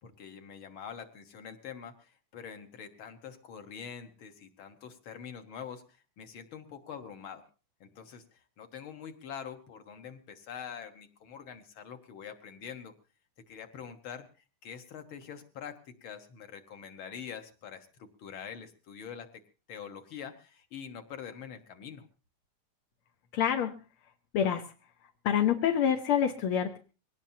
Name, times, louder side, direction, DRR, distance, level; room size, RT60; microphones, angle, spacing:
voice 1, 0.0-7.4 7.8-12.9 13.5-14.3 14.6-19.4 19.7-22.1, left 7 dB, 50° left, 7 dB, 1.8 m, -45 dB
voice 2, 23.3-23.7 24.3-24.6 25.2-26.8, left 9 dB, 70° left, 5 dB, 1.3 m, -26 dB
22.0 x 18.0 x 2.8 m, 0.34 s
omnidirectional pair, 3.7 m